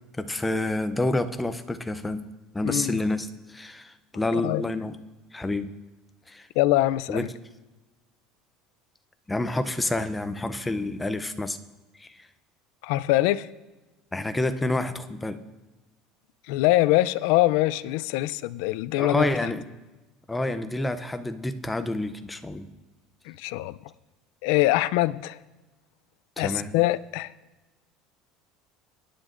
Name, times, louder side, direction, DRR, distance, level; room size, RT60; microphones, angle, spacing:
voice 1, 0.2-2.2 2.5-5.0 5.3-5.7 6.3-6.5 7.1-7.3 9.3-11.6 12.0-12.2 14.1-15.4 19.0-19.7 20.3-22.7 26.4-26.7, left 2 dB, 10° left, 0.5 m, -28 dB
voice 2, 2.6-3.0 4.3-4.6 6.6-7.3 12.8-13.5 16.5-19.3 23.3-23.7 24.4-25.4 26.4-27.3, left 17 dB, 70° left, 0.4 m, -23 dB
22.0 x 9.9 x 2.5 m
cardioid pair, 165°, 0 cm